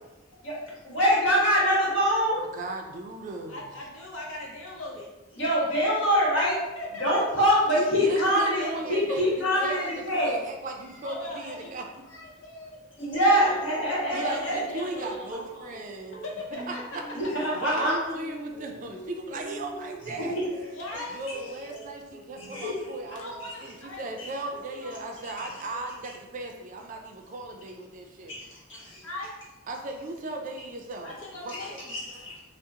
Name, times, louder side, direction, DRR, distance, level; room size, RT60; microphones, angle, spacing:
voice 1, 0.8-2.4 5.4-6.6 7.0-10.3 13.0-14.6 17.1-18.0 20.2-20.5 22.4-22.7 23.4-23.5 24.2-24.3 25.4-25.5 28.3-29.1 31.9-32.3, equal, 65° left, -6 dB, 1.2 m, -24 dB
voice 2, 2.4-3.6 7.7-11.8 14.1-16.2 16.7-17.0 17.5-20.3 21.1-23.3 23.6-28.4 29.7-31.1 31.4-31.8, right 2 dB, 40° right, 3 dB, 0.3 m, -37 dB
voice 3, 3.5-5.1 6.8-7.2 8.8-9.2 9.5-9.7 10.8-11.7 12.1-13.6 14.1-15.8 16.1-17.6 20.7-21.2 23.1-24.1 24.4-25.3 29.0-29.3 31.0-31.9, left 1 dB, 85° left, -2 dB, 0.7 m, -40 dB
sound 1, 13.3-23.8 24.1-25.4 25.7-26.3, right 1 dB, 35° left, 0.5 m, -44 dB
2.7 x 2.0 x 3.6 m, 1.0 s
head